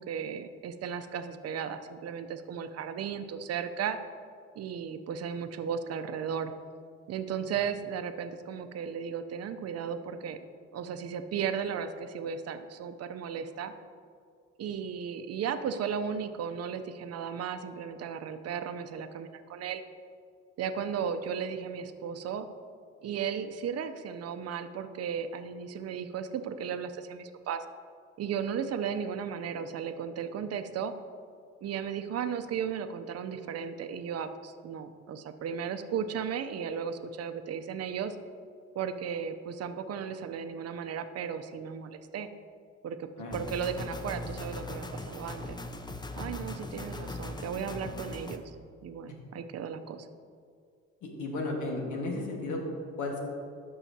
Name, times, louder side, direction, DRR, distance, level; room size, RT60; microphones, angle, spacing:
voice 1, 0.0-4.0 4.6-6.5 7.1-10.4 10.7-13.7 14.6-19.8 20.6-22.5 23.0-27.6 28.2-30.9 31.6-38.2 38.7-42.3 42.8-45.6 46.1-48.5 48.8-50.1, right 7 dB, 55° right, 9 dB, 0.6 m, -35 dB
sound 1, 43.3-48.4, left 2 dB, 15° left, 0.5 m, -39 dB
voice 2, 51.0-52.6 53.0-53.2, left 2 dB, 80° left, 0 dB, 1.7 m, -34 dB
13.0 x 5.6 x 2.8 m, 2.2 s
cardioid pair, 90°, 30 cm